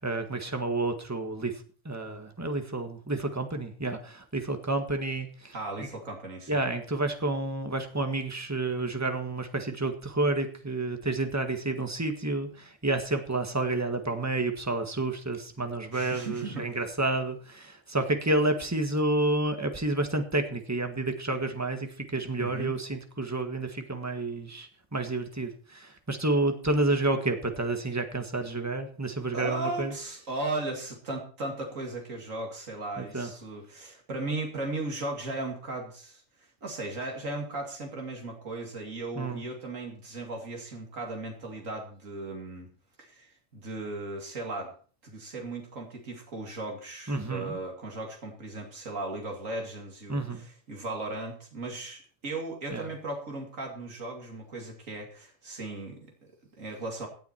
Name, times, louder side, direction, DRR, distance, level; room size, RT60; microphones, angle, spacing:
voice 1, 0.0-1.5 1.8-5.9 6.5-29.9 33.0-33.3 39.1-39.4 47.1-47.6 50.1-50.5 52.7-52.9, right 2 dB, 15° right, 6 dB, 1.6 m, -30 dB
voice 2, 5.5-6.6 15.9-16.7 22.4-22.7 29.3-42.7 43.0-44.7 45.0-57.1, right 2 dB, 85° right, 1 dB, 2.8 m, -37 dB
17.0 x 9.5 x 4.5 m, 0.43 s
omnidirectional pair, 1.3 m